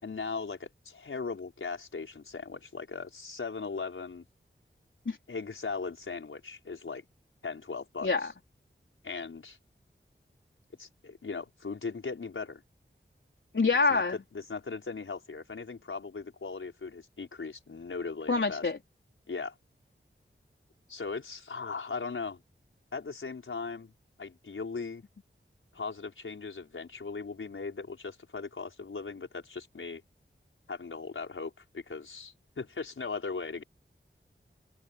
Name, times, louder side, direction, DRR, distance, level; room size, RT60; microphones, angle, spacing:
voice 1, 0.0-4.2 5.3-7.0 7.4-8.3 9.0-9.6 10.8-12.6 13.9-18.6 19.3-19.5 20.9-22.4 22.9-23.9 24.2-25.0 25.7-30.0 30.7-33.6, left 4 dB, 85° left, 5.4 m, -38 dB
voice 2, 13.5-14.1 18.3-18.8, left 4 dB, 70° left, 4.2 m, -26 dB
cardioid pair, 45°, 20 cm